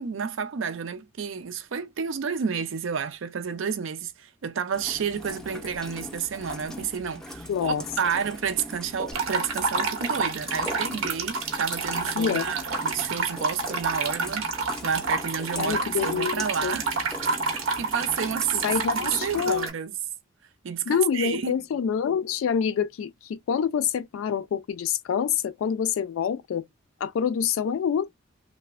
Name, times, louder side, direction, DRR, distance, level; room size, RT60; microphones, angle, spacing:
voice 1, 0.0-14.5 14.8-16.9 17.5-18.6 18.9-19.9 20.6-21.6, right 7 dB, 65° right, 0.4 m, -30 dB
Rain, 4.7-19.7, left 1 dB, 5° left, 0.5 m, -40 dB
voice 2, 7.5-7.8 12.1-12.5 15.6-16.7 18.5-19.7 20.9-26.7 27.0-28.1, left 7 dB, 75° left, 0.3 m, -26 dB
sound 1, 9.1-19.7, right 4 dB, 80° right, 0.8 m, -29 dB
3.1 x 2.0 x 2.4 m
head